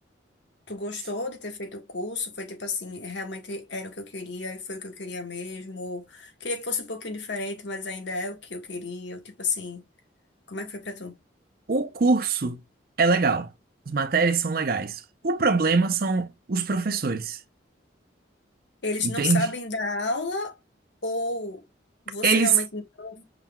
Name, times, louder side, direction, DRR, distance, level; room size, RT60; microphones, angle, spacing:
voice 1, 0.7-9.8 10.5-11.2 18.8-20.6 21.0-21.6 22.1-23.2, left 3 dB, 70° left, 1.4 m, -32 dB
voice 2, 11.7-12.6 13.0-13.5 13.9-17.4 19.0-19.5 22.2-22.6, right 4 dB, 50° right, 0.6 m, -23 dB
5.7 x 3.8 x 2.3 m
head